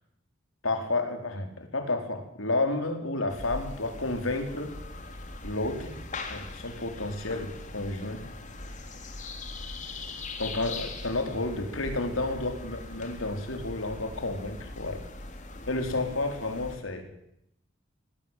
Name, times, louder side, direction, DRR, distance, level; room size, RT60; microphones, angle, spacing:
voice 1, 0.6-4.7 5.4-6.0 6.3-8.2 10.4-15.0 15.7-17.1, left 2 dB, 85° left, 6 dB, 4.6 m, -31 dB
sound 1, 3.3-16.8, left 2 dB, 40° left, 3.3 m, -41 dB
21.0 x 20.5 x 9.3 m, 0.76 s
head